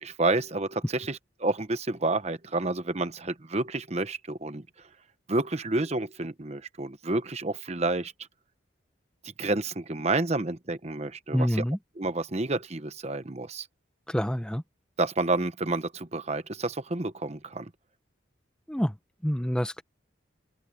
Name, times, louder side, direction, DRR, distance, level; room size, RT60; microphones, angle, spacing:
voice 1, 0.0-4.7 5.3-8.1 9.4-11.6 12.0-13.7 15.0-17.7, right 2 dB, 35° right, 1.0 m, -29 dB
voice 2, 11.3-11.8 14.1-14.6 18.7-18.9 19.2-19.8, equal, 5° left, 0.9 m, -27 dB
open air
head